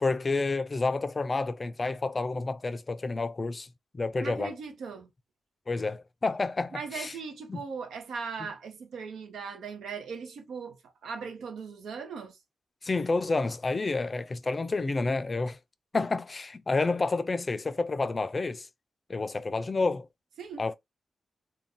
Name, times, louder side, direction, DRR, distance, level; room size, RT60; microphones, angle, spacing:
voice 1, 0.0-3.7 3.9-4.5 5.7-7.1 7.5-7.6 12.8-15.6 15.9-18.7 19.1-20.1 20.6-20.7, left 3 dB, 40° left, 0.4 m, -29 dB
voice 2, 4.2-5.1 6.7-12.4 20.4-20.7, right 5 dB, 85° right, 0.7 m, -39 dB
2.5 x 2.2 x 3.5 m
cardioid pair, 60°, 0 cm